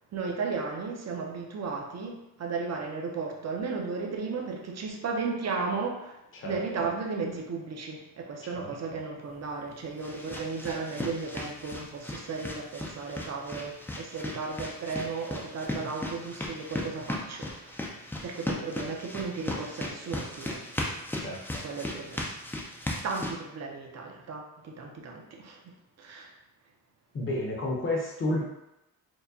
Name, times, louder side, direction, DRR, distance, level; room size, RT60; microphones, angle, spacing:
voice 1, 0.1-17.8 18.2-21.1 21.6-22.3 23.0-25.7 26.0-26.3, right 4 dB, 45° right, 0 dB, 0.6 m, -35 dB
sound 1, 9.3-23.3, left 1 dB, 5° left, 0.3 m, -37 dB
voice 2, 21.2-21.6 27.1-28.5, left 1 dB, 35° left, -2 dB, 0.7 m, -31 dB
4.6 x 2.2 x 2.7 m, 0.92 s
wide cardioid pair, 160°, 37 cm